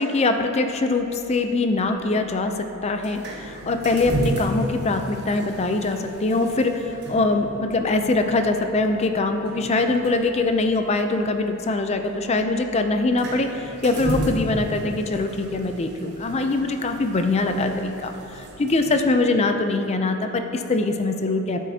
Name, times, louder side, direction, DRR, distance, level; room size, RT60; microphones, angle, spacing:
voice 1, 0.0-2.5 2.8-3.2 3.5-13.5 13.8-21.6, left 2 dB, 30° left, 6 dB, 0.4 m, -23 dB
sound 1, 0.9-19.2, right 1 dB, 50° right, 1.2 m, -35 dB
13.5 x 7.3 x 2.8 m, 2.9 s
head